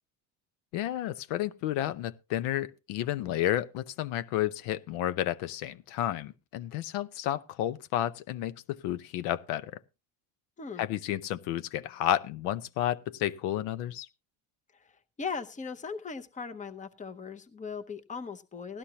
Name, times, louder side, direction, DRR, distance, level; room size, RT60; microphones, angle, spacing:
voice 1, 0.7-9.8 10.8-14.1, left 12 dB, 85° left, 0.8 m, -31 dB
voice 2, 15.2-18.8, left 5 dB, 15° left, 0.8 m, -38 dB
17.0 x 11.5 x 2.8 m
cardioid pair, 125°, 48 cm